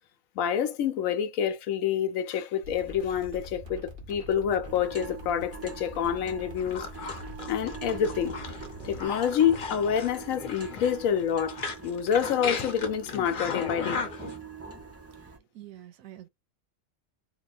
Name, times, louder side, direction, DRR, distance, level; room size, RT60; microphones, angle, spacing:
voice 1, 0.4-6.8 7.5-8.4 8.8-14.0, left 8 dB, 80° left, 1.0 m, -27 dB
sound 1, 2.6-9.1, equal, 45° right, 1.3 m, -45 dB
sound 2, 4.6-15.4, right 4 dB, 25° right, 0.3 m, -43 dB
sound 3, 6.6-14.4, left 5 dB, 45° left, 0.8 m, -36 dB
voice 2, 15.2-16.3, right 13 dB, 90° right, 1.0 m, -47 dB
3.0 x 2.2 x 4.0 m
omnidirectional pair, 1.4 m